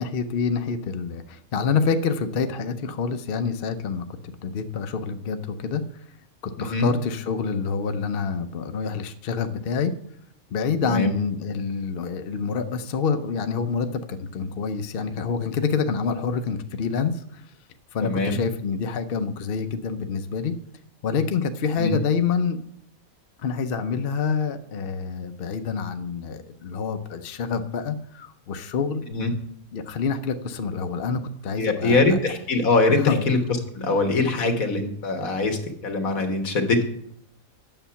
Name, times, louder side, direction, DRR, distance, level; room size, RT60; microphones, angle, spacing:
voice 1, 0.0-4.0 4.4-5.8 6.6-9.9 10.5-17.4 17.9-20.5 21.0-22.6 23.4-29.0 29.7-32.0 33.0-33.2, left 5 dB, 55° left, 8 dB, 0.7 m, -27 dB
voice 2, 6.6-6.9 10.8-11.1 18.0-18.4 21.8-22.0 29.1-29.3 31.6-33.4 33.7-36.8, left 3 dB, 75° left, 5 dB, 1.8 m, -23 dB
9.1 x 6.9 x 5.6 m, 0.70 s
omnidirectional pair, 1.5 m